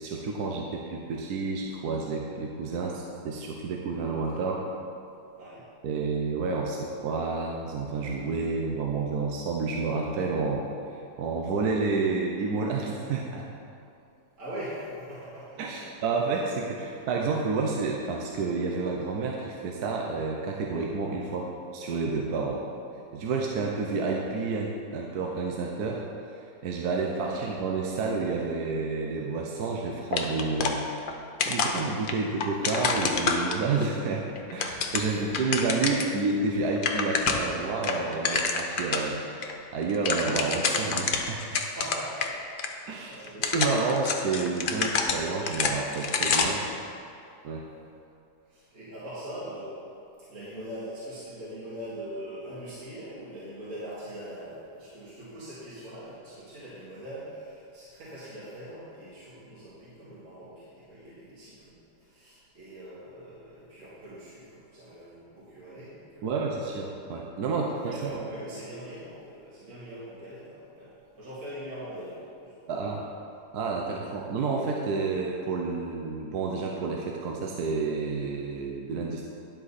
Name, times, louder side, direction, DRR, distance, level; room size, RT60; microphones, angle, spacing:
voice 1, 0.0-4.6 5.8-6.8 7.0-13.5 15.6-21.5 21.7-22.6 23.1-31.2 31.5-41.5 42.9-43.2 43.5-46.6 47.4-47.6 66.2-68.1 72.7-73.0 73.5-79.3, right 4 dB, 70° right, 0 dB, 1.3 m, -30 dB
voice 2, 14.4-15.8 27.3-27.5 35.2-35.6 41.6-43.6 48.5-49.8 50.2-61.6 62.0-66.5 67.8-72.9 73.8-74.0, equal, 45° right, -11 dB, 2.4 m, -42 dB
sound 1, 30.1-31.1 31.4-33.9 34.4-36.2 36.5-36.6 36.8-37.5 37.8-39.1 39.4-39.5 39.8-42.3 42.6-42.7 43.2-46.7, left 4 dB, 75° left, 0.4 m, -28 dB
10.5 x 7.7 x 4.1 m, 2.6 s
omnidirectional pair, 1.8 m